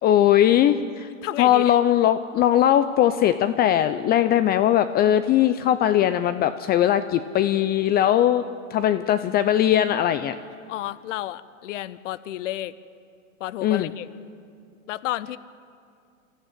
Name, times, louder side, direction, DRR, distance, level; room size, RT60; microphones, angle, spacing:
voice 1, 0.0-1.1 1.4-8.4 8.7-10.4 13.6-13.9, left 11 dB, 25° left, 12 dB, 0.5 m, -20 dB
voice 2, 1.2-1.7 10.7-12.7 13.4-14.1 14.9-15.4, left 14 dB, 70° left, 17 dB, 0.8 m, -31 dB
24.5 x 14.0 x 9.2 m, 2.4 s
hypercardioid pair, 125°, 39 cm